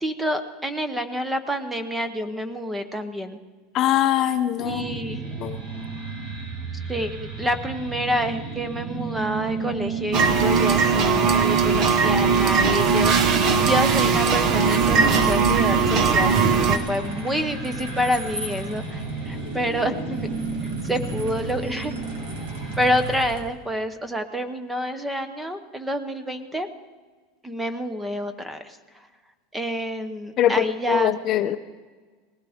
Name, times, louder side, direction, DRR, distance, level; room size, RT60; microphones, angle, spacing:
voice 1, 0.0-3.4 4.6-5.2 6.9-13.1 13.5-20.3 20.6-21.9 22.8-26.7 27.4-28.8 29.5-31.6, equal, 5° right, 10 dB, 0.8 m, -28 dB
voice 2, 3.7-4.9 5.4-5.6 30.4-31.6, left 11 dB, 35° left, 9 dB, 0.5 m, -22 dB
sound 1, 4.6-23.1, right 3 dB, 50° right, 5.8 m, -33 dB
sound 2, 10.1-16.8, right 5 dB, 35° right, 0.9 m, -19 dB
sound 3, 14.3-23.4, right 1 dB, 85° right, 3.1 m, -39 dB
19.5 x 16.5 x 3.5 m, 1.4 s
supercardioid pair, 165°, 0 cm